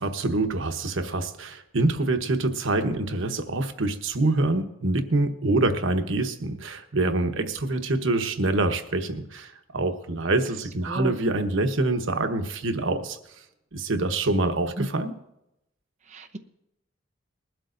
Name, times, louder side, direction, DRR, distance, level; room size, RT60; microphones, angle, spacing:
voice 1, 0.0-13.2 13.7-15.1, right 2 dB, 90° right, 7 dB, 1.1 m, -25 dB
voice 2, 16.1-16.4, right 1 dB, 40° right, 3 dB, 0.8 m, -34 dB
20.5 x 12.0 x 2.6 m, 0.85 s
head